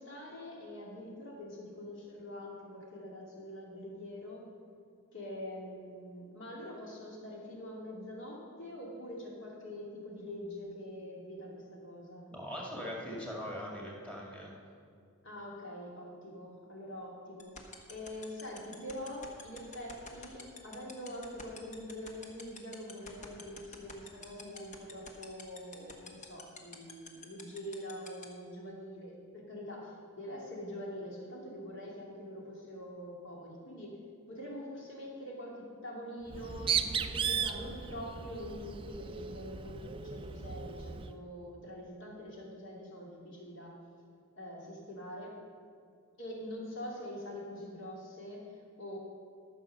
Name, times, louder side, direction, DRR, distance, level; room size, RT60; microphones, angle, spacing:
voice 1, 0.0-4.5 5.1-12.3 15.2-17.6 17.9-34.0 34.3-43.8 44.4-45.4 46.2-49.0, left 1 dB, 55° left, -2 dB, 2.5 m, -44 dB
voice 2, 12.3-14.5, equal, 5° left, -3 dB, 2.1 m, -41 dB
sound 1, 17.4-28.2, left 4 dB, 35° left, 1.1 m, -46 dB
Bird, 36.3-41.1, right 7 dB, 25° right, 0.3 m, -36 dB
13.5 x 6.4 x 6.6 m, 2.3 s
head